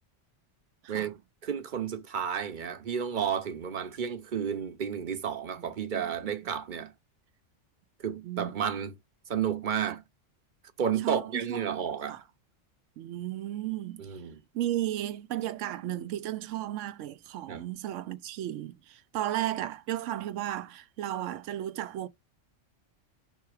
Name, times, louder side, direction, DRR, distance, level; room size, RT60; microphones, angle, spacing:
voice 1, 1.4-6.9 8.0-8.9 9.3-10.0 10.8-12.2 14.0-14.4 17.5-17.7, right 8 dB, 45° right, 0.8 m, -32 dB
voice 2, 11.0-11.6 12.1-12.2 13.0-14.1 14.5-22.1, right 13 dB, 80° right, 0.9 m, -34 dB
5.8 x 3.7 x 4.8 m
omnidirectional pair, 1.3 m